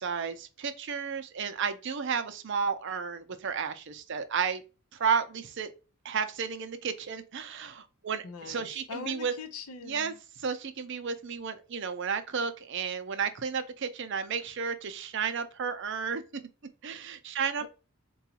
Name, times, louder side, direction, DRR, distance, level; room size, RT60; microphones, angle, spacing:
voice 1, 0.0-4.6 4.9-5.7 6.0-9.3 9.9-10.1 10.4-16.2 16.8-17.6, right 6 dB, 55° right, 0.5 m, -32 dB
voice 2, 8.2-10.2 17.6-17.7, left 4 dB, 90° left, 0.7 m, -42 dB
3.9 x 2.3 x 2.8 m
head